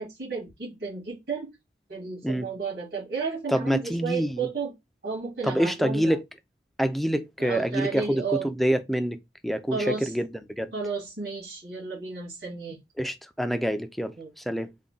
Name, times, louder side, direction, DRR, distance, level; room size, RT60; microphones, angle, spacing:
voice 1, 0.0-1.6 1.9-4.7 5.0-6.2 7.4-8.5 9.7-10.1 10.7-12.8 14.2-14.3, right 5 dB, 80° right, 1.8 m, -32 dB
voice 2, 3.5-4.5 5.4-6.2 6.8-9.2 9.4-10.7 13.0-14.7, equal, ahead, 0.3 m, -27 dB
3.5 x 2.1 x 3.8 m
head